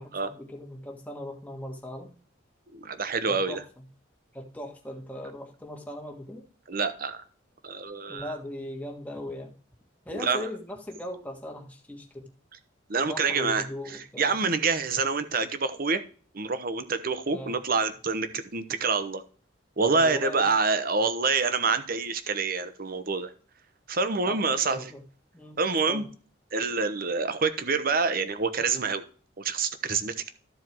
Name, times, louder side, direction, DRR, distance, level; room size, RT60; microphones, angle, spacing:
voice 1, 0.0-2.1 3.3-3.8 4.3-6.4 8.1-9.5 10.0-12.3 13.0-14.3 17.3-17.5 19.9-20.5 24.1-25.0 25.3-25.6 25.9-26.1, left 1 dB, 10° left, 1.5 m, -39 dB
voice 2, 2.7-3.6 6.7-7.2 7.6-8.3 10.1-10.5 12.9-16.0 16.3-19.2 19.8-23.3 23.9-24.9 25.6-26.0 26.5-29.0 29.4-30.3, right 4 dB, 45° right, 0.9 m, -27 dB
13.0 x 4.6 x 4.6 m
head